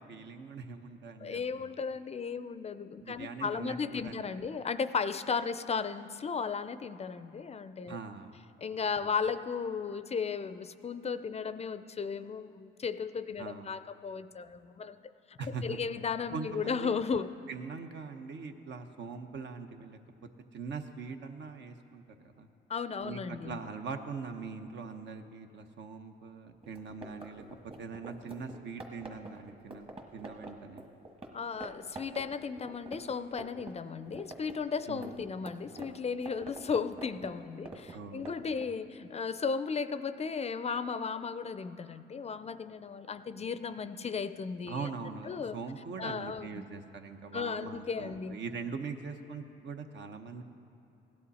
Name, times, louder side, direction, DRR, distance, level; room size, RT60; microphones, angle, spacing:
voice 1, 0.0-1.7 3.0-4.2 7.9-8.3 9.0-9.1 13.4-13.7 15.4-15.8 16.3-22.5 23.0-30.9 34.9-35.3 37.9-38.5 44.7-50.4, right 5 dB, 65° right, 6 dB, 0.9 m, -42 dB
voice 2, 1.2-8.0 8.6-15.0 15.3-17.3 22.7-23.6 31.3-44.9 45.3-45.6 46.0-46.6 47.3-48.4, left 5 dB, 30° left, 12 dB, 0.4 m, -35 dB
sound 1, 26.6-31.3 31.6-31.7 31.9-33.7 34.0-38.7, right 2 dB, 30° right, 1.5 m, -45 dB
16.5 x 11.0 x 4.2 m, 2.9 s
cardioid pair, 90°, 20 cm